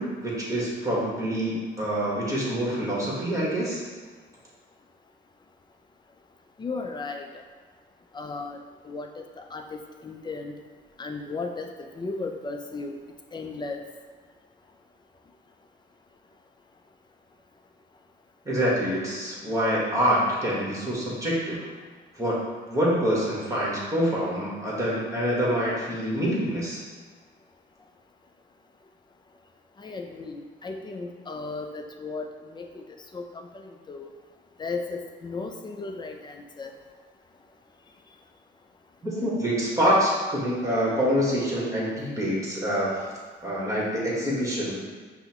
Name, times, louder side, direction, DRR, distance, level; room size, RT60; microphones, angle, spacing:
voice 1, 0.0-3.8 18.4-21.7 22.2-22.4 22.7-26.8 39.1-43.1 43.4-44.8, equal, 15° right, -6 dB, 1.3 m, -26 dB
voice 2, 6.6-7.3 8.1-10.5 11.0-12.9 13.3-13.8 29.8-32.8 33.1-34.1 34.6-36.7, left 3 dB, 20° left, 4 dB, 0.4 m, -35 dB
5.5 x 2.1 x 2.8 m, 1.5 s
cardioid pair, 90°, 20 cm